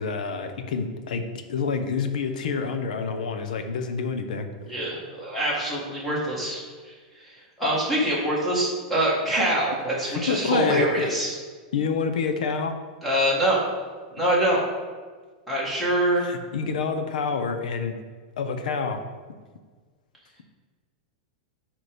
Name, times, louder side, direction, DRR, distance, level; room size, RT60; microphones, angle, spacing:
voice 1, 0.0-4.5 10.0-11.1 11.7-12.7 16.1-18.0 18.4-19.0, left 5 dB, 80° left, 7 dB, 0.8 m, -28 dB
voice 2, 4.6-6.9 7.2-7.3 7.6-11.4 13.0-13.6 14.2-14.6 15.5-16.2, right 1 dB, ahead, -7 dB, 1.5 m, -24 dB
8.2 x 3.1 x 5.1 m, 1.5 s
supercardioid pair, 175°, 4 cm